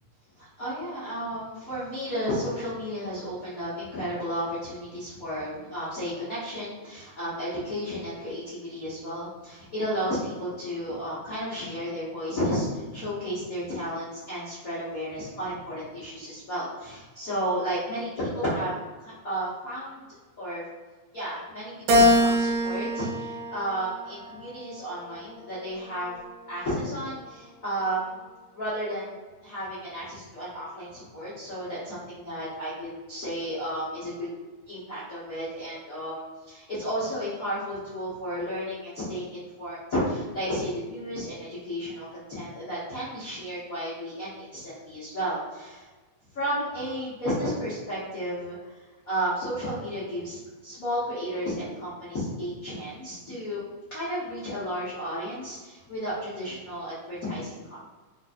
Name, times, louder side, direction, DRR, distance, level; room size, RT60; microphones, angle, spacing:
voice 1, 0.4-20.0 20.4-20.6 21.1-26.2 26.5-28.2 28.5-29.1 29.4-34.3 34.7-45.9 46.3-48.7 49.1-53.6 53.9-57.8, equal, 90° left, -11 dB, 0.7 m, -33 dB
Keyboard (musical), 21.9-24.4 25.0-26.2, left 1 dB, 80° right, 1.8 m, -24 dB
3.9 x 3.6 x 2.5 m, 1.3 s
omnidirectional pair, 3.3 m